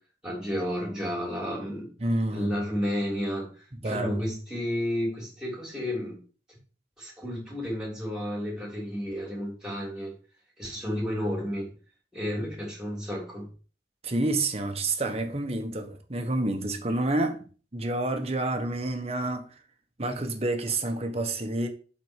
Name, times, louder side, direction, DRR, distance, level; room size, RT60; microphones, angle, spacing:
voice 1, 0.2-1.9 2.3-3.5 3.8-6.2 7.0-10.1 10.6-11.7 12.1-13.5, equal, 5° right, 3.4 m, -31 dB
voice 2, 2.0-2.6 3.7-4.3 14.0-19.6 20.0-21.7, right 2 dB, 35° right, 1.2 m, -29 dB
7.7 x 4.3 x 6.3 m
head